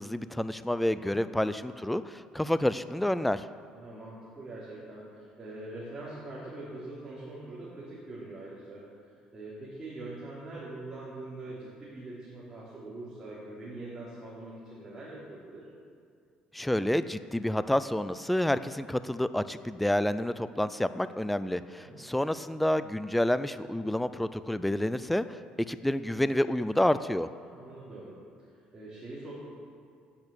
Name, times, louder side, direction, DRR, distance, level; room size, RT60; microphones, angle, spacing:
voice 1, 0.0-3.4 16.5-25.4 25.7-27.3, left 1 dB, 5° left, 13 dB, 0.3 m, -29 dB
voice 2, 1.0-1.5 3.7-15.6 21.8-22.1 27.4-29.3, right 2 dB, 15° right, -9 dB, 3.2 m, -43 dB
10.5 x 8.7 x 8.3 m, 2.2 s
cardioid pair, 155°, 2 cm